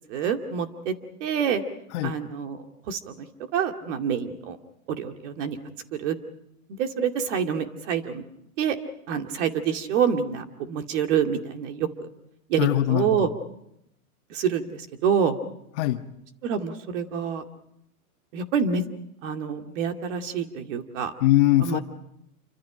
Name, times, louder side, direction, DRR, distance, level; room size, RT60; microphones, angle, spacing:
voice 1, 0.1-0.9 1.2-1.6 2.0-2.6 2.9-3.1 3.5-4.6 4.9-5.6 5.9-6.2 6.8-8.2 8.6-8.8 9.1-11.9 12.5-13.3 14.3-15.3 16.4-17.4 18.3-18.8 19.2-21.1 21.7-21.8, right 7 dB, 55° right, 2.4 m, -26 dB
voice 2, 12.6-13.3 15.8-16.1 21.2-21.8, left 14 dB, 50° left, 1.5 m, -22 dB
28.0 x 25.0 x 5.1 m
hypercardioid pair, 135°, 44 cm